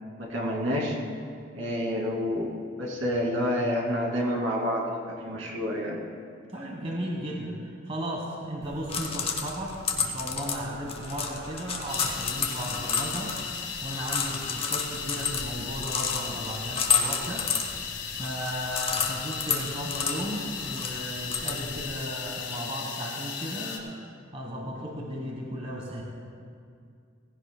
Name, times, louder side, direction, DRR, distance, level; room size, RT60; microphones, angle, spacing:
voice 1, 0.2-1.0 1.5-6.0, equal, 75° right, -3 dB, 2.6 m, -29 dB
voice 2, 6.5-13.4 13.8-17.5 18.1-23.9 24.3-26.0, equal, 30° right, -1 dB, 1.3 m, -35 dB
sound 1, 8.6-21.9, left 5 dB, 30° left, 0.9 m, -31 dB
gas pipes, 11.9-23.8, left 7 dB, 55° left, 1.4 m, -36 dB
17.5 x 16.0 x 2.2 m, 2.3 s
head